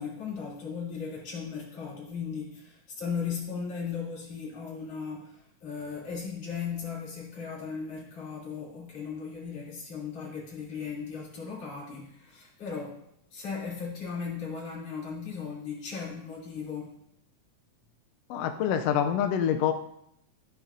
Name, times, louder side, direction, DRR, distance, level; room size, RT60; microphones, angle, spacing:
voice 1, 0.0-13.0 13.3-17.0, left 6 dB, 55° left, -6 dB, 4.2 m, -37 dB
voice 2, 18.3-19.7, left 9 dB, 80° left, 6 dB, 1.5 m, -26 dB
13.5 x 10.0 x 2.7 m, 0.76 s
omnidirectional pair, 3.4 m